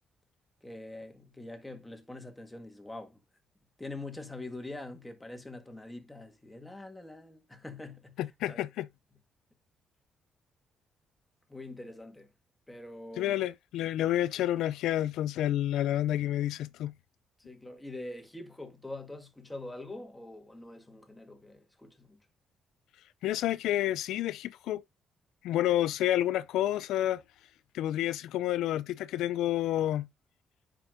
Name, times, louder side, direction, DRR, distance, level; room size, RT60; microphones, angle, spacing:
voice 1, 0.6-3.2 3.8-8.2 8.5-8.6 11.5-12.3 12.7-13.4 17.4-22.2, left 2 dB, 10° left, 1.7 m, -44 dB
voice 2, 8.2-8.9 13.2-16.9 23.2-24.8 25.4-27.2 27.7-30.1, left 13 dB, 85° left, 0.4 m, -29 dB
9.8 x 5.2 x 2.5 m
cardioid pair, 90°, 0 cm